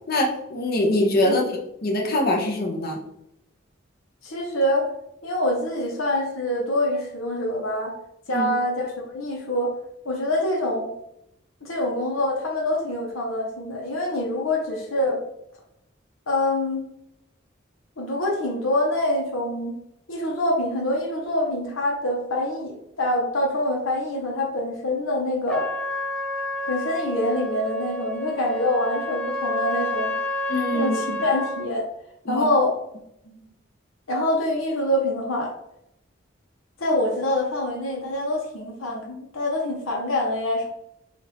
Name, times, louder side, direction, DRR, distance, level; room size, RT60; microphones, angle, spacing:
voice 1, 0.1-3.0 8.3-8.5 30.5-31.2 32.3-32.5, left 1 dB, 50° left, 0 dB, 0.7 m, -24 dB
voice 2, 4.2-4.9 5.2-8.0 8.3-9.7 10.0-10.9 11.6-15.2 16.3-16.8 18.0-19.8 20.1-25.7 26.7-30.2 30.7-31.9 32.3-32.7 33.2-33.4 34.1-35.5 36.8-40.7, left 1 dB, 85° left, -1 dB, 0.9 m, -25 dB
Trumpet, 25.5-31.7, left 1 dB, 5° left, 0.3 m, -29 dB
4.0 x 2.5 x 3.4 m, 0.80 s
head